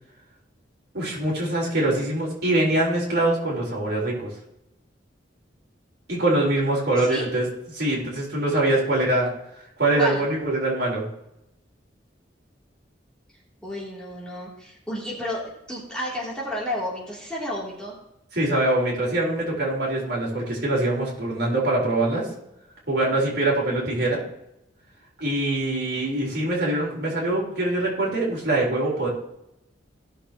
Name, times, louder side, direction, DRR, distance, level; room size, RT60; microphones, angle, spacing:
voice 1, 0.9-4.3 6.1-7.5 7.7-9.3 9.8-11.1 18.3-22.3 22.9-24.2 25.2-29.1, right 2 dB, 60° right, -4 dB, 4.0 m, -23 dB
voice 2, 6.9-7.3 9.9-10.3 13.6-17.9, left 1 dB, 5° left, -6 dB, 2.9 m, -31 dB
17.5 x 6.7 x 3.0 m, 0.85 s
head